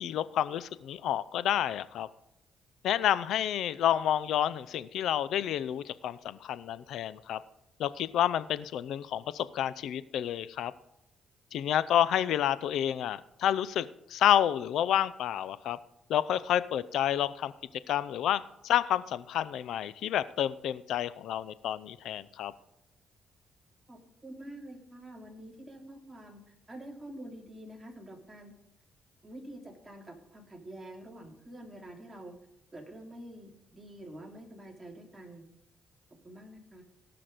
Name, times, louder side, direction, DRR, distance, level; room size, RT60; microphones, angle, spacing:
voice 1, 0.0-2.1 2.8-7.4 7.8-10.7 11.5-15.8 16.1-17.5 17.9-22.5, left 10 dB, 80° left, 16 dB, 0.5 m, -29 dB
voice 2, 23.9-26.4 26.7-28.5 29.2-32.3 32.7-35.4 36.2-36.8, right 1 dB, 15° right, 0 dB, 3.0 m, -47 dB
18.0 x 5.9 x 5.1 m, 0.82 s
cardioid pair, 90°, 0 cm